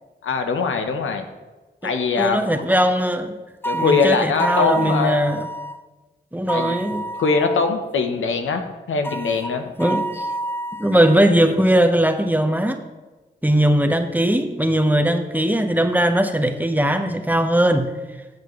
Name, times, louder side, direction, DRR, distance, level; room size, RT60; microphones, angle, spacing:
voice 1, 0.2-1.2 1.8-2.6 3.6-5.2 6.5-6.7 7.1-8.6 8.9-9.7, left 5 dB, 85° left, 6 dB, 0.9 m, -22 dB
voice 2, 1.8-3.4 3.7-5.5 6.3-7.0 9.8-10.3 10.8-12.8 13.4-17.9, right 1 dB, 10° right, 6 dB, 1.0 m, -19 dB
sound 1, 3.6-5.8 6.5-7.7 9.0-11.2, right 2 dB, 10° left, 0.4 m, -28 dB
13.0 x 7.8 x 3.1 m, 1.2 s
cardioid pair, 45°, 20 cm